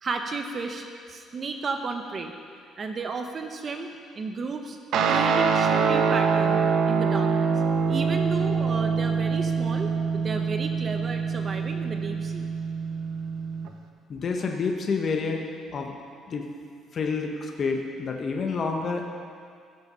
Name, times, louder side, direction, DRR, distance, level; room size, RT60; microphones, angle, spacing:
voice 1, 0.0-2.3 2.8-4.8 5.1-6.6 6.9-12.5, right 4 dB, 30° right, 5 dB, 0.7 m, -33 dB
Guitar, 4.9-13.7, right 5 dB, 60° right, 0.9 m, -24 dB
voice 2, 14.1-15.5 15.7-16.0 16.3-16.5 16.9-19.2, left 4 dB, 35° left, 2 dB, 0.9 m, -28 dB
16.0 x 7.6 x 5.6 m, 2.2 s
cardioid pair, 160°, 0 cm